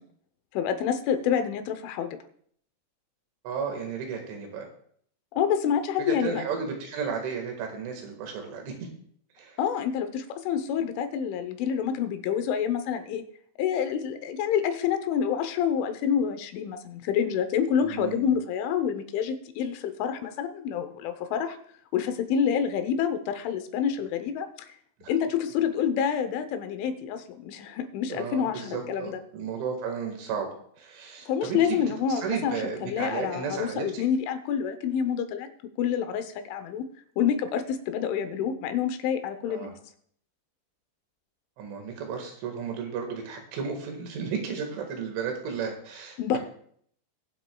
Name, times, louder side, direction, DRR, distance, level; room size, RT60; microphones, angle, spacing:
voice 1, 0.5-2.2 5.4-6.4 9.6-13.2 13.6-21.6 21.9-24.7 25.1-29.2 31.3-35.5 35.8-36.9 37.2-39.8 46.2-46.4, left 8 dB, 85° left, 9 dB, 3.3 m, -28 dB
voice 2, 3.4-4.7 6.0-8.7 9.4-9.6 17.8-18.3 25.0-25.1 28.1-30.5 30.8-31.8 32.2-34.0 39.5-39.7 41.6-46.4, right 6 dB, 80° right, 3 dB, 4.2 m, -33 dB
21.0 x 7.8 x 2.3 m, 0.62 s
omnidirectional pair, 5.5 m